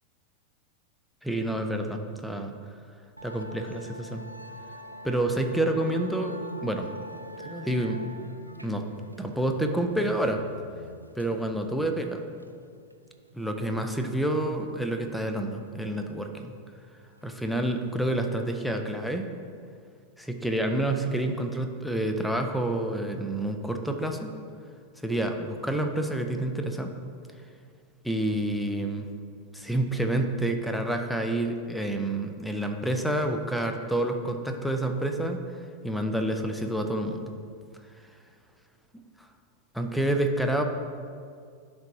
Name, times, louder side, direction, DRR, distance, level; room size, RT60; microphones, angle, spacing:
voice 1, 1.2-2.5 3.2-4.3 5.0-6.9 7.4-8.1 8.6-8.9 9.2-10.4 11.1-12.2 13.3-16.5 17.2-19.3 20.2-24.3 25.0-26.9 28.0-29.1 29.5-37.2 39.7-40.6, right 1 dB, ahead, 5 dB, 0.6 m, -28 dB
Musical instrument, 3.2-18.7, equal, 85° right, 0.3 m, -45 dB
10.5 x 3.6 x 4.0 m, 2.2 s
figure-of-eight pair, 90°, 0 cm